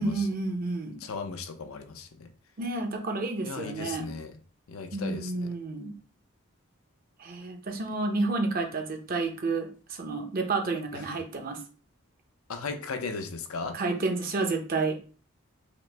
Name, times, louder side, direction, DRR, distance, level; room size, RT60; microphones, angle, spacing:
voice 1, 0.0-1.0 2.6-4.1 4.9-5.9 7.2-11.6 13.7-15.0, right 3 dB, 40° right, 0.6 m, -30 dB
voice 2, 1.0-2.3 3.4-4.3 4.7-5.5 10.9-11.2 12.5-13.8, left 4 dB, 80° left, 0.6 m, -37 dB
4.9 x 2.0 x 3.3 m
head